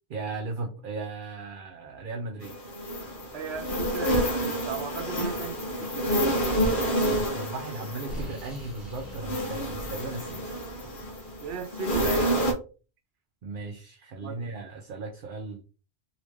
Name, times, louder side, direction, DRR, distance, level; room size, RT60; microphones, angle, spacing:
voice 1, 0.1-2.5 7.1-10.4 13.4-15.6, right 3 dB, 60° right, 0.7 m, -37 dB
sound 1, 2.4-12.5, equal, 55° left, 1.1 m, -29 dB
voice 2, 3.3-6.3 11.4-12.5 14.2-14.4, right 6 dB, 85° right, 0.9 m, -36 dB
Explosion, 6.4-7.0 7.8-11.6, right 1 dB, ahead, 1.6 m, -41 dB
3.1 x 2.7 x 3.4 m
omnidirectional pair, 1.1 m